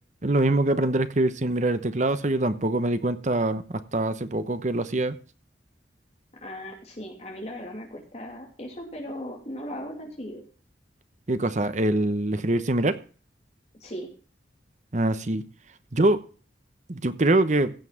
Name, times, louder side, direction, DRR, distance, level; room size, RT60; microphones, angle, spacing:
voice 1, 0.2-5.2 11.3-13.0 14.9-15.4 15.9-16.2 16.9-17.7, right 2 dB, 40° right, 0.9 m, -24 dB
voice 2, 6.4-10.4 13.8-14.1, equal, 35° left, 2.5 m, -37 dB
16.0 x 5.7 x 5.7 m
head